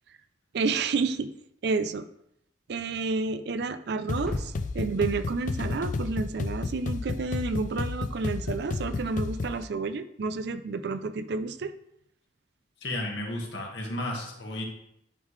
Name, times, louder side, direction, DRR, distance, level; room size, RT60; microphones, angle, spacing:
voice 1, 0.5-1.3 1.6-2.1 2.7-11.7, right 4 dB, 60° right, 11 dB, 0.4 m, -30 dB
sound 1, 4.1-9.6, left 3 dB, 45° left, 0.4 m, -32 dB
sound 2, 4.3-6.3, equal, ahead, 0.6 m, -42 dB
voice 2, 12.8-14.6, left 1 dB, 75° left, 0 dB, 1.6 m, -33 dB
10.5 x 3.7 x 3.2 m, 0.77 s
head